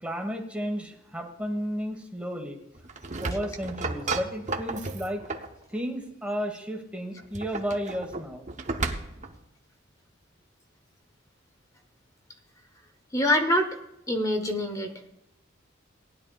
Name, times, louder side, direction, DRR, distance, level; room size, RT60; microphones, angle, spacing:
voice 1, 0.0-2.6 3.2-5.2 5.7-8.5, equal, 5° right, 3 dB, 1.4 m, -33 dB
sound 1, 2.8-5.6 7.2-9.4, right 3 dB, 35° right, 0.8 m, -33 dB
voice 2, 13.1-13.8 14.1-14.9, left 1 dB, 15° left, 5 dB, 0.9 m, -24 dB
18.0 x 10.5 x 2.4 m, 0.86 s
head